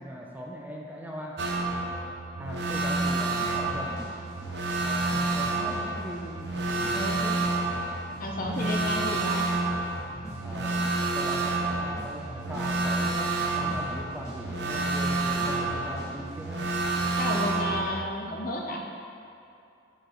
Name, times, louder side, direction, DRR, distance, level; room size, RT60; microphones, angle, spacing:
voice 1, 0.0-1.4 2.4-4.0 4.7-7.5 10.4-10.8 11.1-13.3 13.6-16.7, equal, 10° right, -2 dB, 0.4 m, -39 dB
sound 1, 1.4-18.0, right 2 dB, 65° right, 0.5 m, -29 dB
sound 2, 3.4-17.1, left 1 dB, 15° left, 1.0 m, -46 dB
voice 2, 8.2-9.5 17.2-18.8, left 1 dB, 50° left, 0 dB, 0.6 m, -32 dB
6.9 x 4.8 x 3.0 m, 2.6 s
head